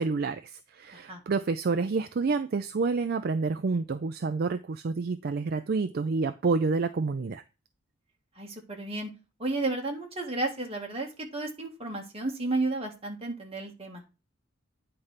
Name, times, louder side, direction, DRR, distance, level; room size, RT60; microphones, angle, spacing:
voice 1, 0.0-7.4, right 4 dB, 45° right, 0.4 m, -28 dB
voice 2, 8.3-9.1 9.4-14.0, right 2 dB, 30° right, 1.7 m, -32 dB
9.4 x 3.3 x 5.7 m
head